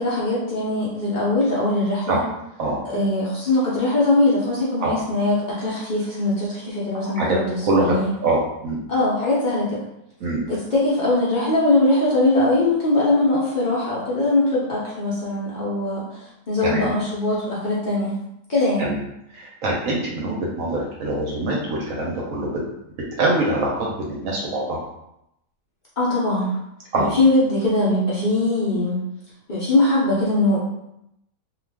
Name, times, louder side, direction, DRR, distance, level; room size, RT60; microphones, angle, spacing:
voice 1, 0.0-2.2 2.8-8.1 8.9-9.8 10.5-16.0 16.5-18.1 18.5-18.9 26.0-26.5 27.0-29.0 29.5-30.6, left 2 dB, 60° left, -7 dB, 0.4 m, -21 dB
voice 2, 7.7-8.0 8.2-8.8 10.2-10.4 16.6-16.9 18.8-19.0 19.6-22.6 23.2-24.8 26.9-27.1, right 2 dB, 65° right, -3 dB, 0.9 m, -23 dB
2.4 x 2.3 x 3.3 m, 0.82 s
omnidirectional pair, 1.7 m